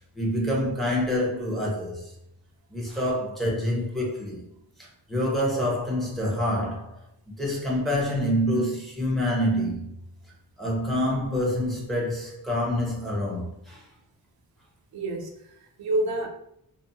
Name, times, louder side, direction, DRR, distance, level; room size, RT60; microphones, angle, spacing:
voice 1, 0.0-2.1 2.7-4.4 4.8-7.0 7.3-9.9 10.6-13.8, equal, ahead, 0.7 m, -27 dB
voice 2, 14.9-16.3, right 1 dB, 90° right, 0.5 m, -28 dB
2.5 x 2.0 x 2.7 m
wide cardioid pair, 125°, 36 cm